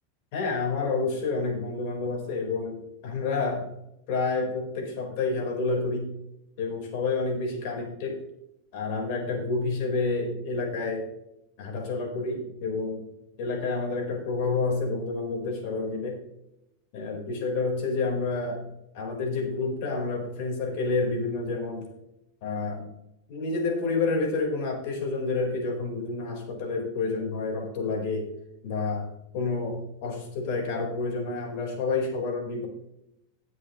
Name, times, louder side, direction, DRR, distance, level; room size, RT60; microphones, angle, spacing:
voice 1, 0.3-3.7 4.1-6.1 6.6-8.2 8.7-11.1 11.6-13.0 13.4-16.2 16.9-18.7 18.9-21.9 22.4-22.9 23.3-28.3 28.6-32.7, left 3 dB, 60° left, 0 dB, 4.3 m, -29 dB
17.0 x 7.7 x 3.1 m, 0.84 s
supercardioid pair, 145°, 0 cm